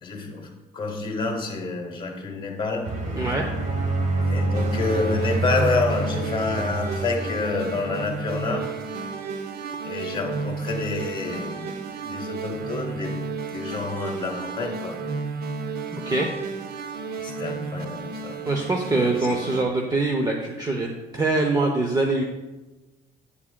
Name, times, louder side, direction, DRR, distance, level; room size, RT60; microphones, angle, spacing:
voice 1, 0.0-0.5 0.7-2.9 4.2-8.7 9.8-11.8 12.0-13.2 13.5-15.0 17.2-18.4 18.9-19.4, left 3 dB, 30° left, 2 dB, 1.4 m, -28 dB
sound 1, 2.8-7.9, right 2 dB, 45° right, 1.2 m, -27 dB
voice 2, 3.1-3.5 16.1-16.3 18.5-20.9 21.1-22.2, right 2 dB, 20° right, 2 dB, 0.7 m, -23 dB
sound 2, 4.5-19.6, right 4 dB, 65° right, 0.7 m, -33 dB
8.4 x 7.2 x 2.2 m, 1.1 s
cardioid pair, 110°, 17 cm